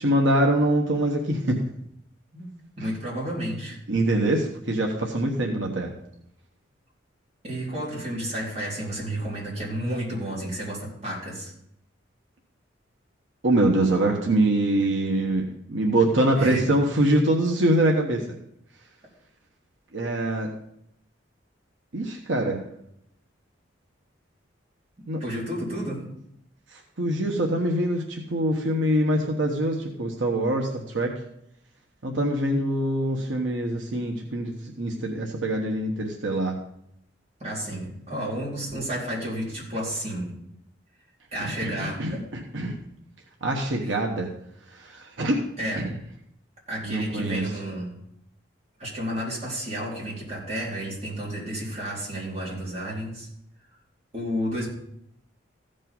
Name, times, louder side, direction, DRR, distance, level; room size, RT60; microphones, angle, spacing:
voice 1, 0.0-1.6 3.9-5.9 13.4-15.4 15.7-18.2 19.9-20.5 21.9-22.6 25.1-25.2 26.7-31.1 32.0-36.6 41.4-42.8 43.4-44.3 44.7-45.4 45.8-45.9 46.8-47.5, right 1 dB, 80° right, 1 dB, 1.2 m, -24 dB
voice 2, 2.3-3.8 7.4-11.5 16.3-16.6 25.2-26.1 37.4-40.3 41.3-42.3 43.8-43.9 45.6-45.9 46.7-48.0 48.8-53.3 54.1-54.7, equal, 35° right, -6 dB, 4.2 m, -31 dB
15.0 x 5.5 x 5.4 m, 0.75 s
head